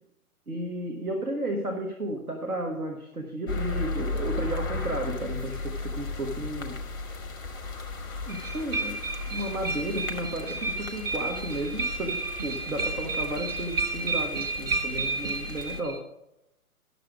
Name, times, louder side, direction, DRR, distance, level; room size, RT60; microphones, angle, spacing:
voice 1, 0.5-6.8 8.2-9.0 9.3-16.0, right 1 dB, 80° right, 2 dB, 1.5 m, -33 dB
sound 1, 3.5-15.8, left 3 dB, 15° left, 0.5 m, -36 dB
sound 2, 8.3-16.0, right 3 dB, 40° right, 0.9 m, -32 dB
11.0 x 6.7 x 5.1 m, 0.86 s
figure-of-eight pair, 130°, 44 cm